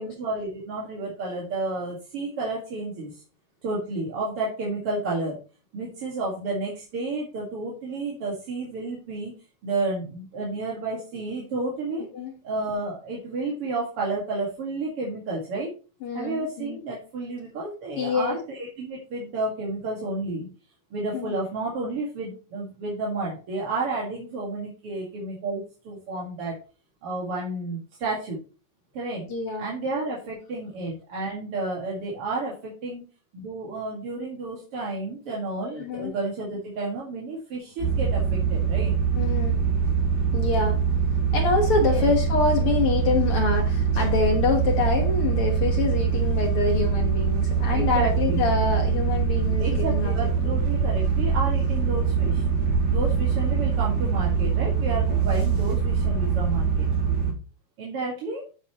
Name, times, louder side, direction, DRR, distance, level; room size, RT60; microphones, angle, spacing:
voice 1, 0.0-3.2 3.6-5.4 5.7-9.3 9.6-12.1 12.4-15.7 16.1-20.5 20.9-26.6 27.0-28.4 28.9-29.3 29.6-33.0 33.3-38.9 41.8-42.1 47.7-48.4 49.6-52.4 52.9-56.9 57.8-58.4, right 2 dB, 45° right, -3 dB, 2.4 m, -31 dB
voice 2, 16.0-16.8 18.0-18.4 21.1-21.3 29.3-29.7 35.8-36.1 39.1-39.6 40.3-40.8 41.3-50.1 50.4-50.5, left 4 dB, 65° left, 2 dB, 1.4 m, -26 dB
sound 1, 37.8-57.3, right 6 dB, 70° right, 5.2 m, -23 dB
9.8 x 8.3 x 3.1 m, 0.35 s
omnidirectional pair, 4.6 m